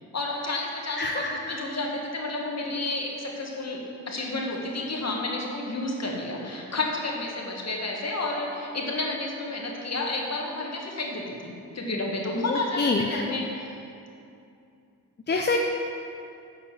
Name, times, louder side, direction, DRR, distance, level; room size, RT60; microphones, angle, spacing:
voice 1, 0.1-3.8 4.1-13.8, left 2 dB, 45° left, -1 dB, 1.8 m, -31 dB
voice 2, 1.0-1.6 12.5-13.2 15.3-15.6, left 3 dB, 30° left, 1 dB, 0.7 m, -26 dB
7.1 x 5.5 x 7.4 m, 2.6 s
cardioid pair, 60°, 37 cm